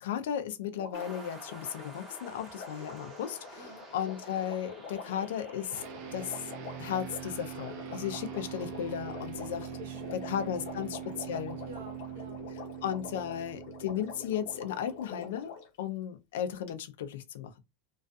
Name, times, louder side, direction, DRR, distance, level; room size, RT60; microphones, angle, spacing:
voice 1, 0.0-5.8 6.1-6.4 6.8-9.7 10.2-11.0 11.3-11.6 12.8-17.5, left 9 dB, 85° left, 0.4 m, -35 dB
Water, 0.7-15.8 16.7-16.8, left 6 dB, 65° left, 0.8 m, -46 dB
sound 1, 0.9-12.5, right 2 dB, 15° right, 0.7 m, -52 dB
voice 2, 3.6-3.9 9.6-10.3 10.6-12.5, right 3 dB, 80° right, 0.8 m, -50 dB
sound 2, 5.7-15.4, right 10 dB, 50° right, 0.4 m, -43 dB
2.5 x 2.3 x 2.3 m
supercardioid pair, 165°, 0 cm